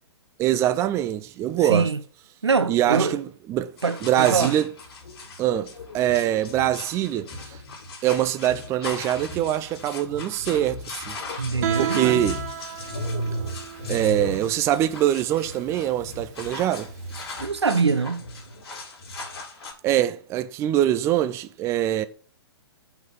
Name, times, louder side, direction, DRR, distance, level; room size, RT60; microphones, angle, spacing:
voice 1, 0.4-1.9 2.7-3.7 4.0-4.7 5.4-7.6 8.0-11.5 11.8-12.4 13.9-16.9 19.8-22.0, right 12 dB, 20° right, 0.5 m, -24 dB
voice 2, 1.6-2.0 2.4-3.2 3.8-4.5 11.4-12.2 17.4-18.3, right 4 dB, 85° right, 1.0 m, -23 dB
sound 1, 3.8-19.7, left 1 dB, 65° left, 3.3 m, -36 dB
Guitar, 11.6-17.3, right 10 dB, 40° right, 1.6 m, -33 dB
6.0 x 5.9 x 6.8 m
figure-of-eight pair, 125°, 14 cm